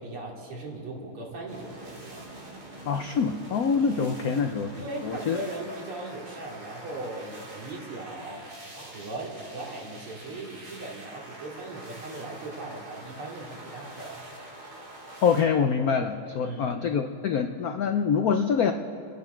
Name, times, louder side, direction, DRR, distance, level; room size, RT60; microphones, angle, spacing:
voice 1, 0.0-2.2 3.9-4.4 4.8-14.2 16.4-16.8, right 2 dB, 80° right, -3 dB, 3.6 m, -38 dB
sound 1, 1.5-15.4, right 1 dB, 45° right, 2.9 m, -45 dB
voice 2, 2.9-4.7 5.0-5.4 15.2-18.7, left 6 dB, 85° left, 6 dB, 0.8 m, -25 dB
30.0 x 10.5 x 4.5 m, 2.9 s
omnidirectional pair, 2.4 m